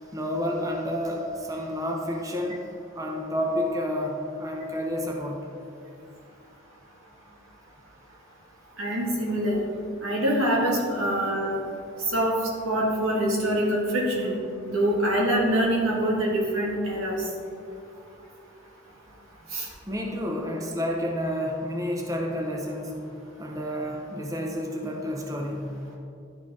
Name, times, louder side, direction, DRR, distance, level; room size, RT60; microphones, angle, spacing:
voice 1, 0.1-5.4 19.9-22.9 23.4-25.7, equal, 15° right, 0 dB, 0.6 m, -30 dB
voice 2, 8.8-9.6 10.0-11.6 12.0-12.3 12.6-14.4 14.7-17.3 19.5-19.7, right 1 dB, 90° right, -3 dB, 1.8 m, -24 dB
11.0 x 4.3 x 3.6 m, 2.5 s
head